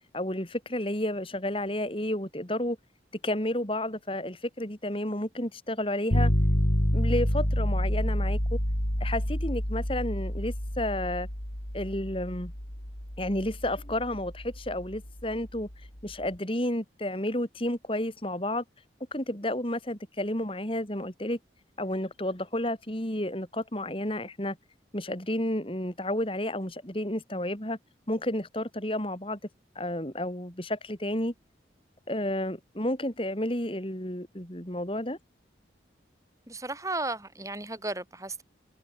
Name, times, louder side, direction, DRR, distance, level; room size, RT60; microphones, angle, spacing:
voice 1, 0.1-2.8 3.2-6.3 6.9-8.6 9.0-11.3 11.7-12.5 13.2-15.7 16.0-18.6 19.1-21.4 21.8-24.6 24.9-27.8 28.1-29.4 29.8-31.3 32.1-35.2, left 1 dB, 30° left, 3.8 m, -31 dB
sound 1, 6.1-16.0, equal, 75° left, 6.2 m, -29 dB
voice 2, 36.5-38.4, right 2 dB, 15° right, 7.4 m, -34 dB
head